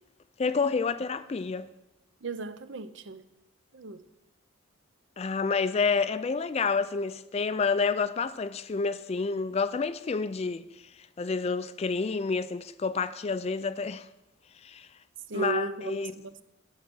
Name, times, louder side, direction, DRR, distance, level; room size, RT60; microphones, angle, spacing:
voice 1, 0.4-1.7 5.2-10.7 11.2-14.1 14.6-14.9 15.3-16.1, left 4 dB, 30° left, 0.3 m, -29 dB
voice 2, 2.2-3.2 3.7-4.0 15.3-16.4, right 3 dB, 55° right, 0.6 m, -35 dB
11.0 x 7.6 x 6.2 m
head